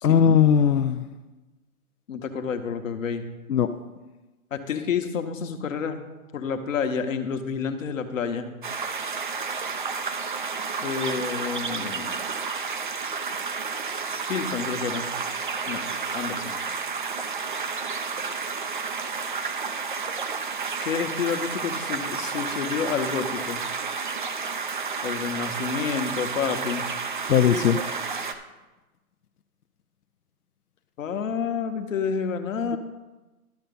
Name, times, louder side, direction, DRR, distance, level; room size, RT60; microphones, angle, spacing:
voice 1, 0.0-1.0 3.5-3.7 27.3-27.8, left 8 dB, 90° left, 6 dB, 0.6 m, -19 dB
voice 2, 2.1-3.2 4.5-6.0 6.3-8.5 10.8-12.1 14.3-15.1 15.7-15.8 16.1-16.6 20.8-23.6 25.0-26.9 31.0-32.8, left 6 dB, 60° left, 7 dB, 1.2 m, -29 dB
sound 1, 8.6-28.3, right 5 dB, 35° right, 0.4 m, -31 dB
12.0 x 5.7 x 5.4 m, 1.1 s
hypercardioid pair, 150°, 44 cm